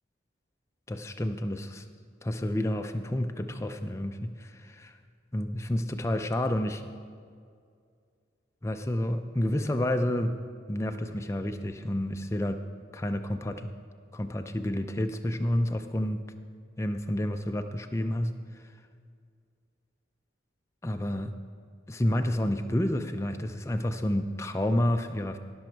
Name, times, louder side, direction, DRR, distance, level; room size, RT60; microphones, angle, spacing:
voice 1, 0.9-1.8 2.2-4.9 5.3-6.9 8.6-10.4 10.7-12.6 12.9-13.7 14.1-16.3 16.8-18.4 20.8-21.3 21.9-25.4, left 1 dB, 15° left, 7 dB, 0.4 m, -29 dB
17.0 x 6.2 x 4.5 m, 2.2 s
head